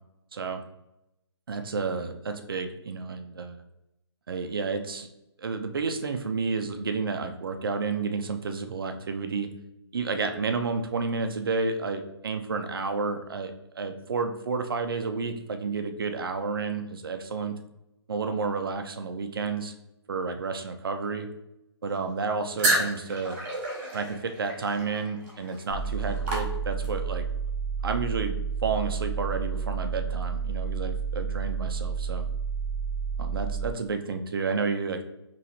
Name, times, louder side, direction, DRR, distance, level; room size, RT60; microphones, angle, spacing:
voice 1, 0.3-0.6 1.5-3.6 4.3-5.1 5.4-9.5 9.9-17.6 18.1-19.7 20.1-21.3 21.8-23.4 23.9-27.3 27.8-28.4 28.6-32.3 33.2-35.0, right 4 dB, 55° right, 6 dB, 0.5 m, -31 dB
Pouring a Beer from the Tap, 22.6-27.1, right 1 dB, 25° right, 1.3 m, -31 dB
sound 1, 25.7-33.7, right 6 dB, 60° left, 0.7 m, -31 dB
4.2 x 3.0 x 2.7 m, 0.89 s
hypercardioid pair, 170°, 14 cm